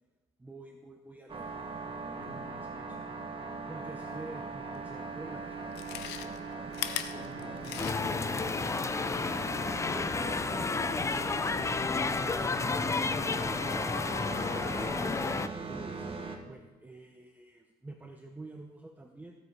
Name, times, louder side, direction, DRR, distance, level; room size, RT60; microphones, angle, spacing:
voice 1, 0.4-1.7 2.0-3.0 3.7-6.7 12.9-13.5 15.7-19.4, right 2 dB, 10° right, 3 dB, 0.8 m, -49 dB
sound 1, 1.3-16.4, right 4 dB, 30° right, 1.4 m, -40 dB
voice 2, 2.2-2.7 7.1-10.1 12.6-13.5 14.1-14.6, left 2 dB, 50° left, -4 dB, 3.8 m, -50 dB
Chewing mastication, 4.8-4.9 5.6-8.3 8.6-8.7, left 11 dB, 85° left, 0.8 m, -38 dB
sound 2, 7.8-15.5, left 4 dB, 15° left, 0.4 m, -31 dB
15.0 x 7.9 x 4.8 m, 1.2 s
cardioid pair, 110°, 17 cm